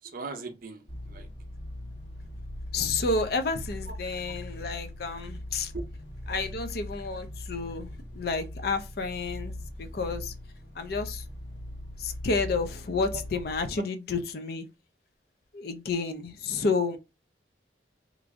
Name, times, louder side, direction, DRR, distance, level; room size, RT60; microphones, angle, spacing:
voice 1, 0.0-1.3 3.9-4.2 5.7-5.8 13.1-13.2, right 3 dB, 50° right, 0.6 m, -40 dB
sound 1, 0.9-13.6, left 1 dB, 90° left, 1.4 m, -40 dB
voice 2, 2.7-5.7 6.3-9.5 9.8-10.3 10.7-11.3 12.0-14.7 15.5-17.0, left 4 dB, 60° left, 0.5 m, -30 dB
3.1 x 2.5 x 3.5 m
head